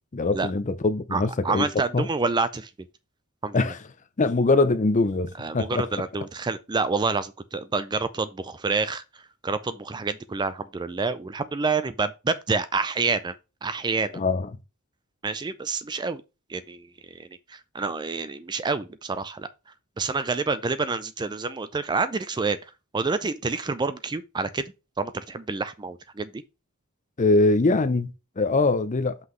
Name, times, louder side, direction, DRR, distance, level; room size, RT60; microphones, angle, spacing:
voice 1, 0.1-1.7 1.9-2.1 3.5-3.8 4.2-5.8 14.1-14.6 27.2-29.2, left 3 dB, 35° left, 0.6 m, -23 dB
voice 2, 1.1-2.7 3.4-3.5 5.4-9.0 9.4-13.3 13.6-14.2 15.2-16.2 16.5-16.9 17.5-19.5 20.0-22.6 22.9-24.6 25.0-26.3, right 4 dB, 20° right, 0.4 m, -28 dB
5.7 x 5.7 x 3.1 m
head